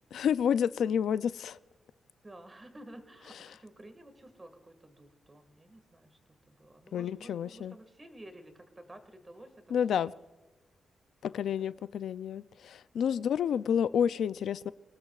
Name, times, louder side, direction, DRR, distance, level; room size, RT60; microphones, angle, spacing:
voice 1, 0.1-1.6 6.9-7.7 9.7-10.1 11.2-14.7, left 8 dB, 75° left, 0.4 m, -29 dB
voice 2, 2.2-9.8 11.3-11.7 13.0-13.2, right 1 dB, 20° right, 1.8 m, -52 dB
24.5 x 19.0 x 2.4 m
wide cardioid pair, 150°, 0 cm